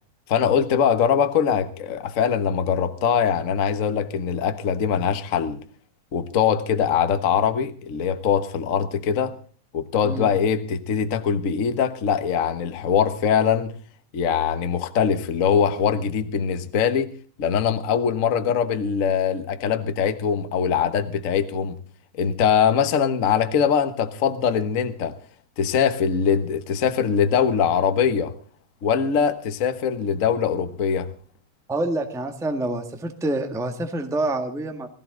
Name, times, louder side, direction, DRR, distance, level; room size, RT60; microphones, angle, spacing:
voice 1, 0.3-5.6 6.1-9.3 9.7-13.7 14.1-17.1 17.4-21.8 22.2-25.1 25.6-28.3 28.8-31.1, left 7 dB, 60° left, 0.8 m, -22 dB
voice 2, 31.7-34.9, right 2 dB, ahead, 0.7 m, -27 dB
20.5 x 15.5 x 3.9 m
omnidirectional pair, 3.6 m